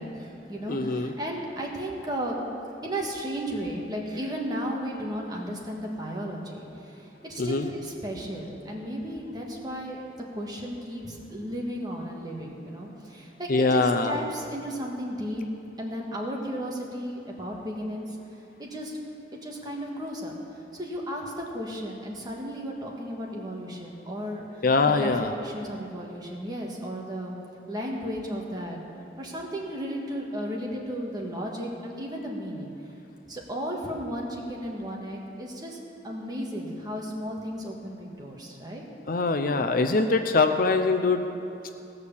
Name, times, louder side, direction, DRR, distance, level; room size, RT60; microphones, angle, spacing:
voice 1, 0.0-2.4 2.8-10.0 10.3-15.5 15.8-18.2 18.6-19.0 19.4-27.3 27.7-28.8 29.2-32.7 33.3-38.8, equal, 20° right, -1 dB, 1.7 m, -34 dB
voice 2, 0.7-1.1 7.4-7.7 13.5-14.2 24.6-25.3 39.1-41.2, left 3 dB, 50° left, 7 dB, 0.6 m, -23 dB
17.5 x 6.5 x 7.1 m, 2.7 s
head